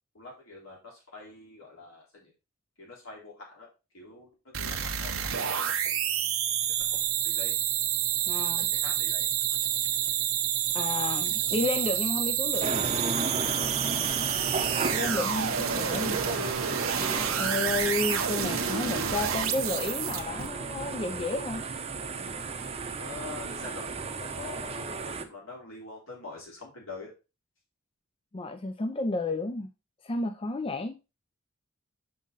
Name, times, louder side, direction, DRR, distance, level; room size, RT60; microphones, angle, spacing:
voice 1, 0.1-2.3 2.8-3.7 3.9-6.0 6.8-7.6 8.5-9.3 13.5-13.8 22.9-23.9 24.2-27.1, left 3 dB, 75° left, 3.6 m, -45 dB
sound 1, 4.5-20.5, right 9 dB, 85° right, 1.0 m, -29 dB
voice 2, 8.3-8.7 10.7-12.9 14.9-16.5 17.3-21.6 28.3-29.7 30.0-31.0, left 2 dB, 25° left, 0.5 m, -32 dB
sound 2, 12.6-25.3, right 4 dB, 30° right, 0.7 m, -34 dB
6.2 x 5.7 x 4.0 m
head